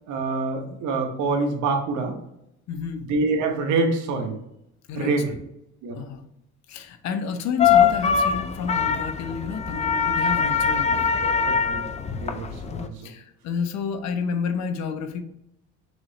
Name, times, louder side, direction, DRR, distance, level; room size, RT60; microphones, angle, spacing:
voice 1, 0.1-2.2 3.1-4.4 4.9-5.3 5.8-5.9 11.2-11.8 12.1-13.1, right 3 dB, 70° right, 4 dB, 1.1 m, -26 dB
voice 2, 2.7-3.0 4.9-5.4 5.9-6.3 6.7-11.1 13.0-15.2, left 6 dB, 60° left, 8 dB, 0.7 m, -30 dB
sound 1, 7.6-12.9, left 6 dB, 25° left, 0.3 m, -22 dB
6.2 x 3.0 x 2.8 m, 0.81 s
cardioid pair, 130°, 30 cm